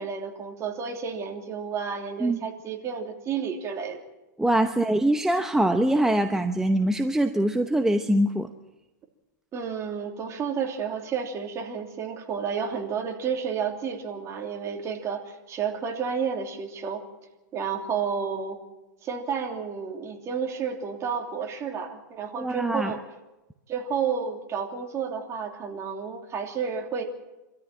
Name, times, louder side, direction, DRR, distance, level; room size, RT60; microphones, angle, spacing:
voice 1, 0.0-4.0 9.5-17.0 17.5-18.6 19.0-23.0 23.7-27.0, right 6 dB, 30° right, 3 dB, 3.0 m, -31 dB
voice 2, 4.4-8.5 22.4-22.9, right 1 dB, 5° right, 7 dB, 0.9 m, -23 dB
25.0 x 13.5 x 9.0 m, 1.0 s
supercardioid pair, 135°, 10 cm